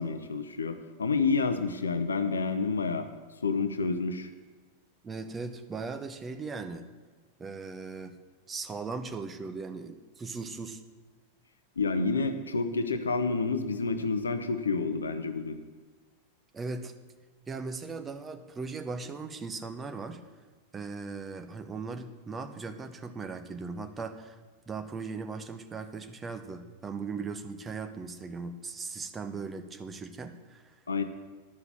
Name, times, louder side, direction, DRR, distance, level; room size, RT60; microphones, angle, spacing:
voice 1, 0.0-3.1 3.4-4.3 11.8-15.6 30.9-31.0, left 4 dB, 75° left, 9 dB, 0.6 m, -29 dB
voice 2, 5.0-6.8 7.4-8.2 8.5-10.8 16.5-16.9 17.5-20.2 20.7-24.4 24.7-30.7, right 4 dB, 15° right, 8 dB, 0.8 m, -38 dB
11.0 x 5.9 x 7.4 m, 1.3 s
figure-of-eight pair, 90°, 0 cm